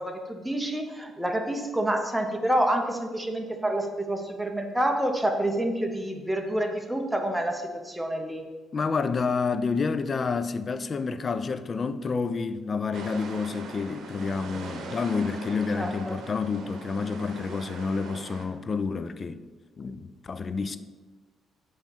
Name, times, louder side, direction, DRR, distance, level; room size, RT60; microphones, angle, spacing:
voice 1, 0.0-8.5 15.8-16.2, right 1 dB, 5° right, 0.7 m, -28 dB
voice 2, 8.7-19.4 19.8-20.8, left 4 dB, 40° left, 0.3 m, -29 dB
sound 1, 12.9-18.5, right 3 dB, 75° right, 0.8 m, -41 dB
7.6 x 3.0 x 4.4 m
cardioid pair, 90°, 0 cm